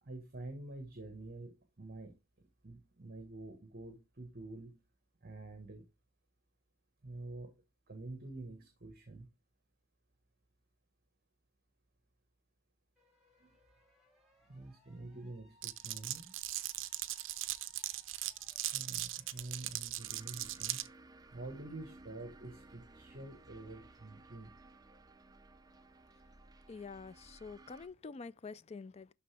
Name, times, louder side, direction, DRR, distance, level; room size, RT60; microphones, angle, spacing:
voice 1, 0.0-4.8 5.2-5.8 7.0-9.3 13.4-13.5 14.5-16.3 18.6-20.8 21.3-24.5, right 2 dB, 50° right, 1.5 m, -48 dB
sound 1, 13.0-20.3, left 1 dB, ahead, 3.5 m, -70 dB
Glass, 15.6-20.9, right 15 dB, 65° right, 0.6 m, -39 dB
sound 2, 20.0-27.9, right 2 dB, 20° right, 0.6 m, -58 dB
voice 2, 26.7-29.1, left 4 dB, 30° left, 0.4 m, -47 dB
12.0 x 4.0 x 3.4 m
head